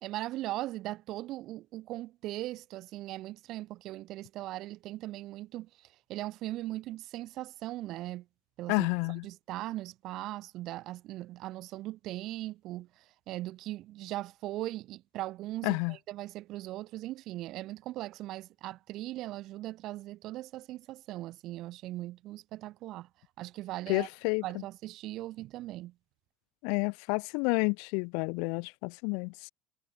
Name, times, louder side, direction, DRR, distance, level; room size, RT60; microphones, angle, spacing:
voice 1, 0.0-8.3 8.6-8.9 9.2-23.1 23.4-24.1 24.4-25.9, right 16 dB, 55° right, 1.0 m, -39 dB
voice 2, 8.7-9.2 15.6-16.0 23.9-24.4 26.6-29.5, left 38 dB, 75° left, 0.3 m, -30 dB
supercardioid pair, 110°, 0 cm